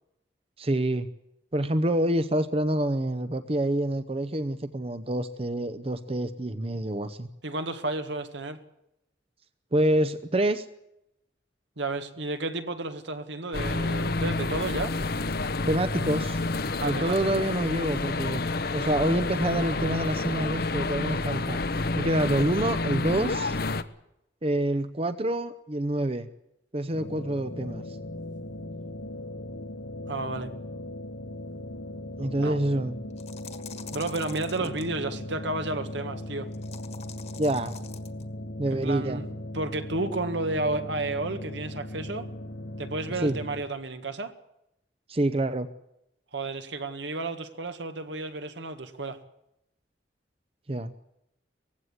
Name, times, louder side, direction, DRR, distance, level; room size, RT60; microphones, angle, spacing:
voice 1, 0.6-1.1 1.5-7.3 9.7-10.7 15.7-16.4 16.8-21.6 22.0-23.6 24.4-26.3 26.7-28.0 32.2-33.0 37.4-37.7 38.6-39.2 43.2-43.4 45.1-45.7 50.7-50.9, right 1 dB, 30° right, 0.8 m, -27 dB
voice 2, 7.4-8.6 11.8-15.0 16.8-17.4 30.1-30.5 32.4-32.6 33.9-36.5 38.7-39.3 39.5-42.3 42.8-44.3 46.3-49.2, right 2 dB, 75° right, 1.8 m, -32 dB
sound 1, 13.5-23.8, left 3 dB, 55° left, 0.9 m, -29 dB
sound 2, 26.9-43.6, left 1 dB, 80° left, 1.7 m, -38 dB
sound 3, 33.1-34.9 36.5-38.2, left 7 dB, 35° left, 1.7 m, -45 dB
19.5 x 16.0 x 9.7 m
head